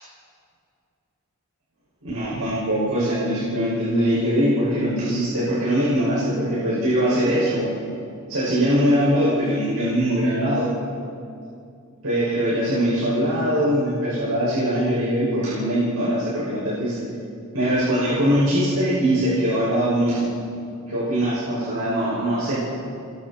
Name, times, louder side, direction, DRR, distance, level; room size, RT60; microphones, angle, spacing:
voice 1, 2.0-7.7 8.3-10.7 12.0-17.0 17.5-20.3 20.9-22.6, equal, 90° right, -8 dB, 6.2 m, -22 dB
30.0 x 22.5 x 4.4 m, 2.5 s
head